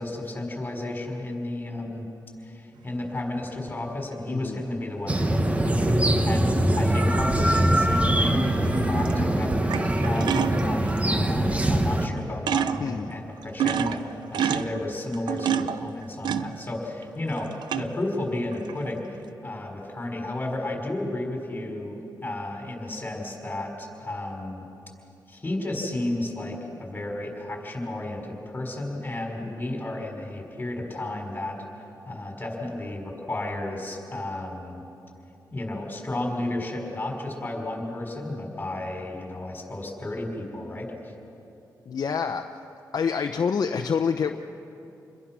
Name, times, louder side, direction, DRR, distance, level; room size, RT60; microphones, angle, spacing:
voice 1, 0.0-2.1 2.4-24.6 25.3-31.6 32.1-34.8 35.5-41.1, left 1 dB, 25° left, 1 dB, 5.3 m, -33 dB
sound 1, 3.5-3.6 7.5-7.8 8.8-9.1 9.5-11.0 11.8-11.9 12.1-12.2 12.5-13.0 13.4-17.0 17.4-18.1 18.5-19.0, right 8 dB, 90° right, 0.6 m, -28 dB
voice 2, 4.3-4.6 12.8-13.2 41.9-42.5 42.9-44.4, left 6 dB, 55° left, 4 dB, 0.8 m, -27 dB
sound 2, 5.1-12.1, right 1 dB, 20° right, 1.3 m, -22 dB
28.5 x 22.0 x 6.1 m, 2.9 s
cardioid pair, 95°, 7 cm